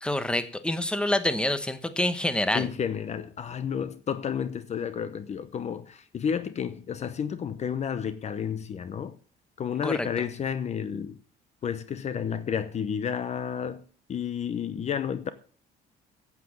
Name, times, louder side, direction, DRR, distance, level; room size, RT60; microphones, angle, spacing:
voice 1, 0.0-2.7 9.8-10.0, left 1 dB, 5° left, 1.1 m, -27 dB
voice 2, 2.5-9.2 9.6-11.2 11.6-15.3, left 7 dB, 40° left, 0.8 m, -31 dB
9.4 x 8.4 x 7.3 m
cardioid pair, 110°, 17 cm